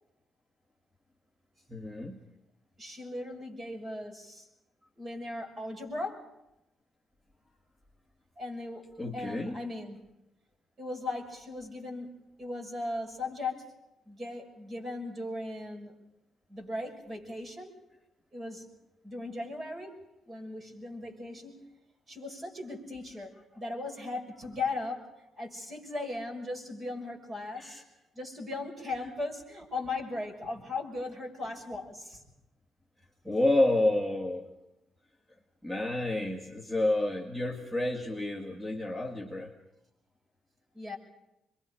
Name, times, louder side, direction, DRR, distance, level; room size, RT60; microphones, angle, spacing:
voice 1, 1.7-2.2 9.0-9.6 27.6-27.8 33.2-34.5 35.6-39.5, left 1 dB, 5° right, 1 dB, 2.1 m, -29 dB
voice 2, 2.8-4.5 5.0-6.3 8.4-8.9 9.1-10.0 10.8-13.7 14.1-15.9 16.5-17.8 18.3-18.7 19.0-20.0 20.3-21.5 22.1-27.8 28.1-32.2 40.7-41.0, left 2 dB, 35° right, 2 dB, 6.0 m, -38 dB
27.0 x 23.0 x 5.1 m, 0.88 s
cardioid pair, 90°, 0 cm